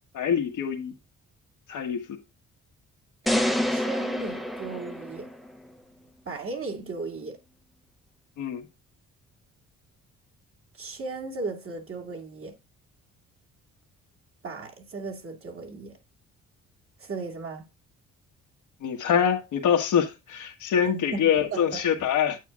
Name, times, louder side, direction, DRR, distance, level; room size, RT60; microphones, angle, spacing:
voice 1, 0.1-0.9 1.7-2.2 8.4-8.6 18.8-22.4, left 8 dB, 80° left, 1.4 m, -25 dB
sound 1, 3.3-5.6, left 1 dB, ahead, 0.7 m, -28 dB
voice 2, 3.7-5.3 6.3-7.4 10.8-12.5 14.4-16.0 17.0-17.6 20.9-22.1, right 3 dB, 45° right, 2.3 m, -36 dB
9.1 x 8.3 x 2.4 m
cardioid pair, 90°, 30 cm